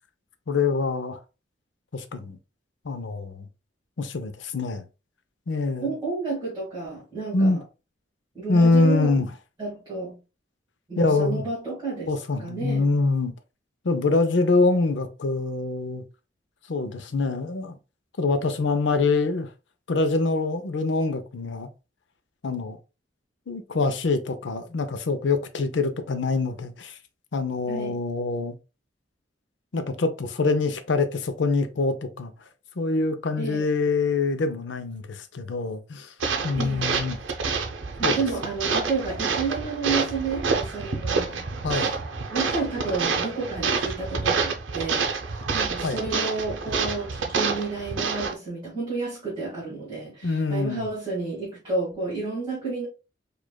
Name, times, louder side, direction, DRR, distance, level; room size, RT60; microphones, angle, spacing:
voice 1, 0.5-1.2 1.9-2.4 2.8-3.5 4.0-4.8 5.5-5.9 7.3-7.6 8.5-9.3 11.0-11.4 12.1-13.3 13.8-16.0 16.7-17.8 18.2-19.5 19.9-21.7 22.4-22.8 23.5-27.0 27.3-28.6 29.7-32.3 32.8-36.1 36.4-37.2 38.0-38.2 41.6-41.9 45.8-46.0 50.2-50.9, left 3 dB, 70° left, 0.5 m, -24 dB
voice 2, 5.8-7.6 8.3-9.1 9.6-10.2 10.9-12.1 12.4-12.9 27.7-28.0 33.4-33.6 36.6-36.9 38.0-41.5 42.3-52.9, right 4 dB, 25° right, 1.8 m, -31 dB
sound 1, 36.2-48.3, right 4 dB, 80° right, 0.6 m, -28 dB
4.9 x 2.4 x 2.2 m
head